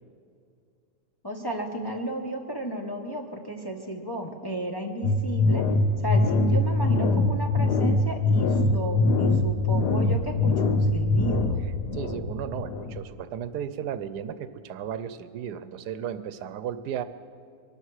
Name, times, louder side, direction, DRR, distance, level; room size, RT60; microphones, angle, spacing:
voice 1, 1.2-5.6 6.0-11.6, right 1 dB, 15° left, 1 dB, 1.0 m, -33 dB
sound 1, 5.0-13.2, left 2 dB, 80° left, 1.5 m, -23 dB
voice 2, 11.9-17.0, right 9 dB, 80° right, 12 dB, 1.3 m, -34 dB
23.5 x 12.0 x 4.9 m, 2.4 s
omnidirectional pair, 1.7 m